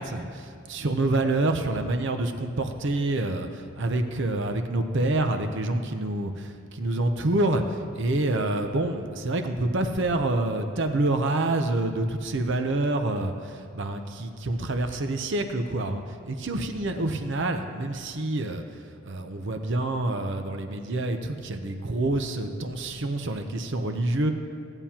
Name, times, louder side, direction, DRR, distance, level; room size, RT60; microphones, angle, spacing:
voice 1, 0.0-18.6 19.0-24.3, right 2 dB, 60° right, 6 dB, 0.7 m, -27 dB
16.5 x 8.9 x 2.9 m, 2.3 s
head